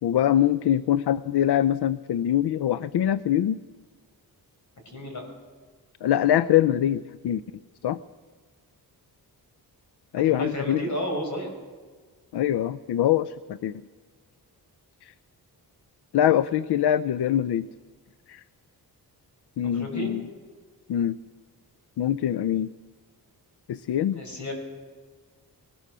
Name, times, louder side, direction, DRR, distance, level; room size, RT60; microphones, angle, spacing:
voice 1, 0.0-3.6 6.0-7.4 7.8-8.0 10.1-10.8 12.3-13.8 15.0-15.1 16.1-17.7 18.3-18.4 19.6-20.3 20.9-21.2 22.0-22.7 23.7-24.2, left 11 dB, 85° left, 16 dB, 0.6 m, -23 dB
voice 2, 4.9-5.3 10.2-11.5 19.7-20.1 24.1-24.5, equal, 45° left, 2 dB, 5.3 m, -32 dB
21.5 x 20.0 x 6.2 m, 1.5 s
wide cardioid pair, 140°, 39 cm